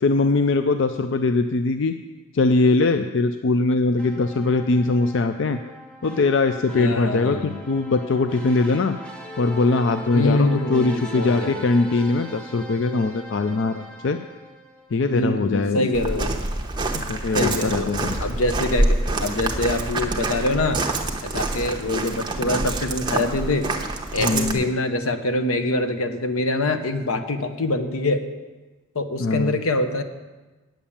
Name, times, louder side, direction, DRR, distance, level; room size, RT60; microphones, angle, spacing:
voice 1, 0.0-2.0 2.3-5.6 6.0-8.9 9.4-14.2 14.9-15.9 16.9-18.1 24.2-24.7 29.2-29.5, left 3 dB, 55° left, 8 dB, 0.4 m, -21 dB
sound 1, 4.0-15.2, equal, 5° left, 0.9 m, -39 dB
voice 2, 6.8-7.6 10.1-11.6 15.1-16.4 17.3-17.9 18.2-20.8 21.2-23.7 24.1-28.2 28.9-30.0, left 2 dB, 85° left, 8 dB, 1.0 m, -24 dB
Walk footsteps, 15.9-24.5, right 2 dB, 20° right, 0.9 m, -26 dB
9.2 x 7.2 x 8.6 m, 1.2 s
head